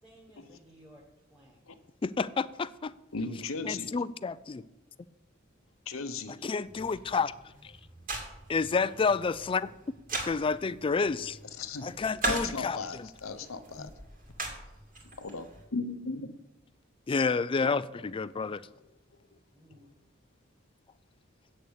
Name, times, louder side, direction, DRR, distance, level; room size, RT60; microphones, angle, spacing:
voice 1, 0.0-1.7 19.5-19.9, right 1 dB, 5° right, 1.8 m, -57 dB
voice 2, 2.0-2.9 3.6-4.6 6.4-7.3 7.6-7.7 8.5-9.7 10.2-11.4 11.8-13.1 13.8-13.9 17.1-18.6, left 4 dB, 25° left, 0.3 m, -29 dB
voice 3, 3.1-3.9 5.9-6.5 11.6-11.9 12.2-13.9 15.2-16.3, left 3 dB, 90° left, 0.9 m, -37 dB
sound 1, 6.6-15.6, right 2 dB, 45° right, 2.4 m, -40 dB
8.5 x 6.7 x 8.0 m
head